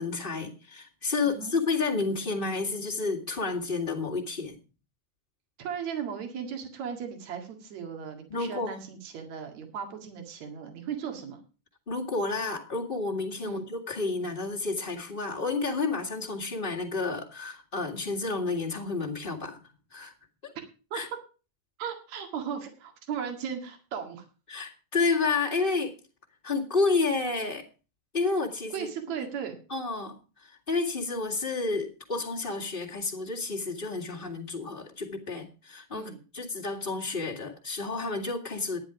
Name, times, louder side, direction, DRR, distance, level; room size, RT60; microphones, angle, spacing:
voice 1, 0.0-4.6 8.3-8.8 11.9-19.6 19.9-20.1 20.4-20.5 20.9-21.1 24.5-25.9 26.4-27.6 28.1-28.9 29.7-38.8, left 3 dB, 20° left, -1 dB, 1.6 m, -30 dB
voice 2, 1.2-1.5 5.6-11.4 13.4-13.6 20.6-20.7 20.9-21.0 21.8-24.2 28.7-29.6 35.9-36.2, right 7 dB, 65° right, 4 dB, 3.2 m, -36 dB
12.0 x 10.5 x 4.9 m, 0.34 s
omnidirectional pair, 3.6 m